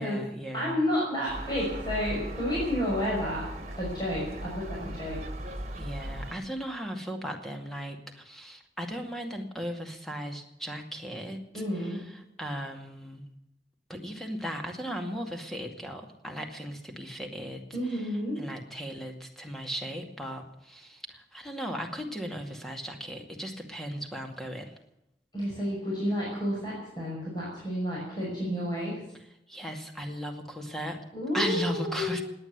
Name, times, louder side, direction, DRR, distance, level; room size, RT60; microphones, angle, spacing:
voice 1, 0.0-0.7 5.8-13.3 13.9-18.1 18.4-24.7 29.5-31.0 31.3-32.2, equal, ahead, 3 dB, 2.2 m, -37 dB
voice 2, 0.5-3.4 3.8-5.2 11.5-12.1 17.7-18.4 25.3-29.0 31.1-32.2, equal, 25° left, -5 dB, 5.7 m, -31 dB
Gull seagull, 1.3-6.3, right 1 dB, 40° right, 2.1 m, -38 dB
18.0 x 9.9 x 8.1 m, 0.84 s
head